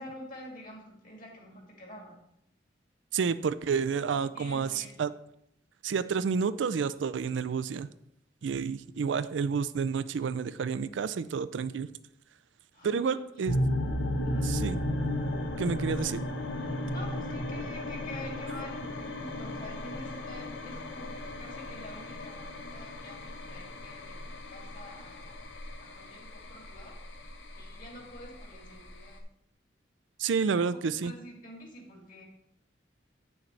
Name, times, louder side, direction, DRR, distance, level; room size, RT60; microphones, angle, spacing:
voice 1, 0.0-2.2 4.1-5.0 12.7-13.2 14.2-14.7 16.6-24.2 24.5-25.5 25.8-27.0 27.5-29.2 30.4-30.6 31.0-32.2, left 1 dB, 50° left, -1 dB, 2.4 m, -47 dB
voice 2, 3.1-5.1 5.8-7.9 8.4-11.9 12.8-13.5 14.6-14.8 15.6-16.2 30.2-31.1, right 6 dB, 85° right, 14 dB, 0.4 m, -30 dB
sound 1, 13.5-29.2, left 1 dB, 80° left, 0.9 m, -35 dB
8.5 x 6.3 x 3.3 m, 0.75 s
head